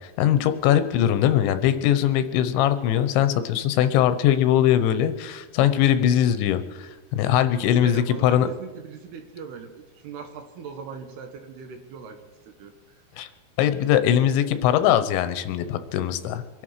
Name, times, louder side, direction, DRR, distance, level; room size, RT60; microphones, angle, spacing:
voice 1, 0.2-8.5 13.2-13.3 13.6-16.4, left 10 dB, 85° left, 11 dB, 3.2 m, -21 dB
voice 2, 7.8-9.7 10.0-12.2 12.5-12.7, right 6 dB, 70° right, 6 dB, 3.0 m, -39 dB
25.0 x 11.5 x 4.9 m, 1.2 s
omnidirectional pair, 5.3 m